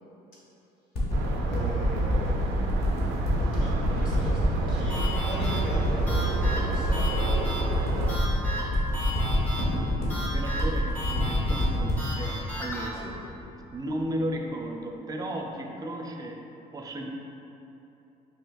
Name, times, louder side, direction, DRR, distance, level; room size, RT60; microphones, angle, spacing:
sound 1, 0.9-13.7 14.3-14.4, left 1 dB, 70° left, 1.1 m, -26 dB
sound 2, 1.1-8.2, right 4 dB, 90° right, 0.4 m, -31 dB
voice 1, 1.4-3.0 3.5-7.1 12.9-13.1, equal, 55° left, -7 dB, 1.4 m, -39 dB
sound 3, 4.9-12.9, equal, 10° left, 0.7 m, -36 dB
voice 2, 10.1-13.1 13.7-16.4 16.7-17.1, right 1 dB, 20° right, 2 dB, 0.4 m, -34 dB
5.6 x 2.8 x 2.3 m, 2.9 s
cardioid pair, 110°, 17 cm